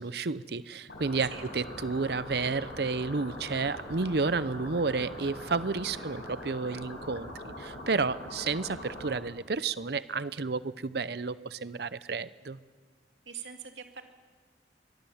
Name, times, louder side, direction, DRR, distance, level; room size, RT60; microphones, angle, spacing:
voice 1, 0.0-12.6, right 4 dB, 60° right, 16 dB, 0.6 m, -31 dB
sound 1, 0.9-9.1, left 1 dB, 70° left, 6.7 m, -42 dB
voice 2, 13.3-14.0, right 7 dB, 80° right, 5 dB, 2.5 m, -43 dB
24.0 x 22.5 x 7.2 m, 1.5 s
head